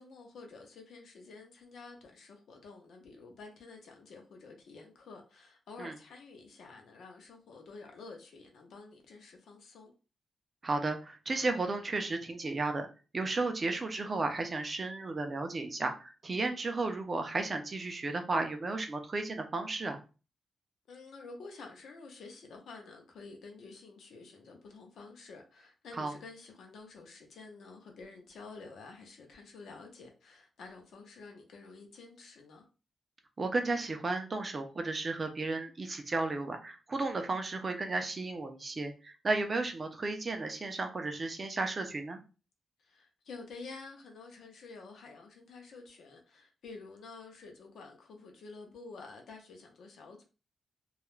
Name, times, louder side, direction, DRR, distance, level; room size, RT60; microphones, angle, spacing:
voice 1, 0.0-9.9 20.9-32.6 42.8-50.2, left 4 dB, 75° left, 0.6 m, -50 dB
voice 2, 10.6-12.9 13.1-20.0 25.9-26.1 33.4-42.2, right 3 dB, 25° right, 0.3 m, -34 dB
2.3 x 2.0 x 3.0 m
wide cardioid pair, 180°, 0 cm